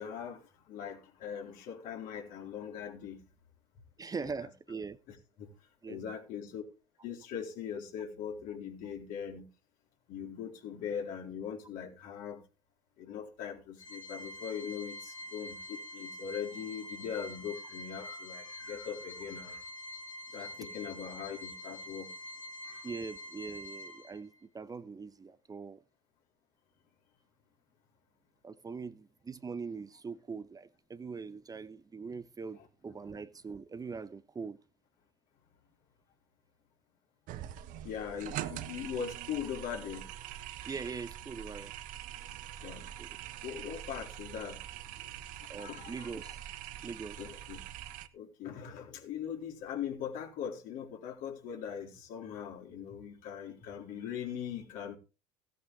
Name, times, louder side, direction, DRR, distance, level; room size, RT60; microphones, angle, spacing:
voice 1, 0.0-3.2 4.2-4.5 5.1-5.5 5.9-6.6 7.0-9.5 10.1-12.4 13.0-19.6 20.3-22.1 22.6-22.9 32.6-32.7 37.8-40.1 42.6-42.9 43.4-46.3 47.2-47.6 48.1-55.0, left 8 dB, 60° left, 3.9 m, -41 dB
voice 2, 4.0-5.0 5.8-6.0 22.8-25.8 28.4-34.6 40.6-41.7 43.0-43.1 45.5-46.4 46.8-47.2, right 5 dB, 25° right, 1.1 m, -42 dB
Organ, 13.8-24.4, left 1 dB, 90° left, 2.1 m, -46 dB
sound 1, 37.3-48.1, right 12 dB, 55° right, 1.3 m, -44 dB
17.0 x 9.3 x 3.5 m
figure-of-eight pair, 65°, 16 cm